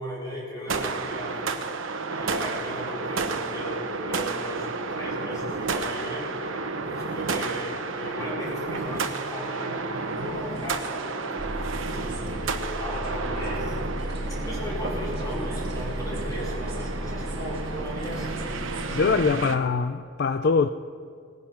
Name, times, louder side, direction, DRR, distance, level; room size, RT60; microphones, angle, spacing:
voice 1, 0.0-1.5 2.1-6.3 6.9-11.1 11.9-13.9 14.4-19.2, equal, 20° left, 4.6 m, -36 dB
sound 1, 0.7-19.6, right 4 dB, 85° right, 1.0 m, -31 dB
sound 2, 3.9-19.5, right 2 dB, 30° right, 2.8 m, -46 dB
sound 3, 11.4-19.3, equal, 60° right, 2.0 m, -35 dB
voice 2, 18.9-20.7, left 4 dB, 55° left, 0.4 m, -23 dB
18.5 x 10.5 x 5.8 m
head